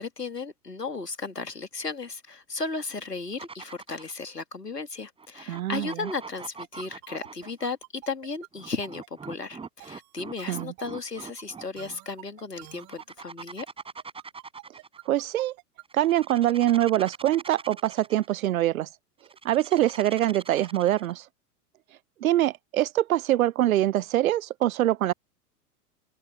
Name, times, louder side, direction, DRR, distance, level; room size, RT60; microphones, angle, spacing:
voice 1, 0.0-13.7, left 4 dB, 85° left, 2.5 m, -35 dB
sound 1, 3.3-4.2 5.2-7.7 8.5-12.0 12.7-15.1 15.8-18.3 19.2-21.2, right 4 dB, 10° right, 5.7 m, -43 dB
voice 2, 5.5-6.1 10.5-10.7 15.1-15.5 15.9-18.9 19.4-21.2 22.2-25.1, right 13 dB, 60° right, 0.5 m, -24 dB
sound 2, 6.6-16.2, right 22 dB, 35° right, 4.1 m, -47 dB
open air
figure-of-eight pair, 100°, 47 cm